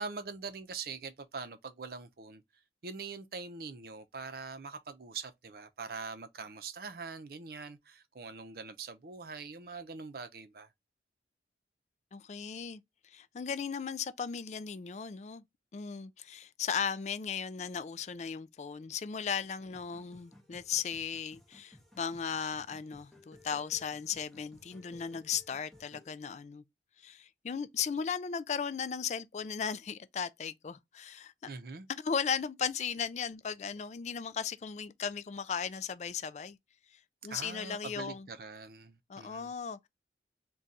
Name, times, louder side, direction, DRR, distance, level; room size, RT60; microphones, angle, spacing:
voice 1, 0.0-2.4 2.8-10.7 31.5-31.9 37.3-39.5, right 4 dB, 55° right, 0.6 m, -43 dB
voice 2, 12.1-15.4 15.7-26.6 27.0-31.3 31.9-36.6 37.2-38.3 39.1-39.9, left 7 dB, 40° left, 0.3 m, -36 dB
sound 1, 19.7-26.1, left 1 dB, ahead, 0.8 m, -59 dB
3.8 x 2.3 x 4.0 m
head